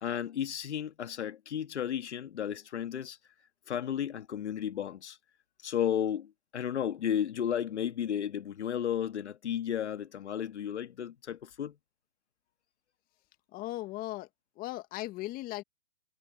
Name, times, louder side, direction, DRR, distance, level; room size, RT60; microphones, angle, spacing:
voice 1, 0.0-3.2 3.7-5.2 5.6-11.8, left 9 dB, 65° left, 2.2 m, -33 dB
voice 2, 13.5-14.3 14.6-15.6, left 17 dB, 25° left, 1.9 m, -37 dB
hypercardioid pair, 135°, 37 cm